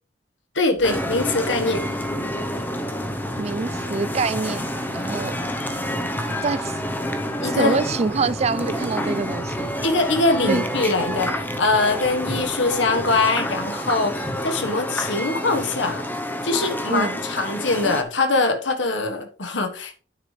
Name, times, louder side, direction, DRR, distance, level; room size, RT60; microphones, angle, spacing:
voice 1, 0.5-1.8 7.4-7.8 9.8-16.0 16.4-19.9, left 3 dB, 85° left, 1.5 m, -22 dB
sound 1, 0.7-14.7, right 1 dB, 35° left, 5.4 m, -48 dB
sound 2, 0.8-18.0, equal, 10° left, 0.9 m, -28 dB
voice 2, 3.4-4.7 4.9-5.4 6.4-6.8 7.4-9.7 10.4-10.6 16.9-17.2, right 4 dB, 35° right, 0.4 m, -25 dB
9.6 x 7.3 x 3.3 m
head